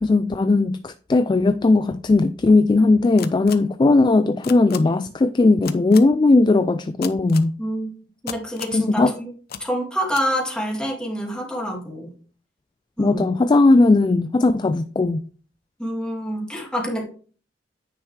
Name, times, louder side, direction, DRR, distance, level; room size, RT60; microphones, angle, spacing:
voice 1, 0.0-7.5 8.7-9.1 13.0-15.2, left 3 dB, 25° left, 0.3 m, -17 dB
sound 1, 3.2-3.5 4.4-4.8 5.6-6.0 7.0-7.5 8.3-8.8 9.5-9.6 10.1-10.2, left 8 dB, 55° left, 0.7 m, -33 dB
voice 2, 7.6-7.9 8.2-9.3 9.6-12.1 13.0-13.2 15.8-17.0, equal, 5° left, 2.1 m, -27 dB
9.7 x 5.5 x 3.2 m
head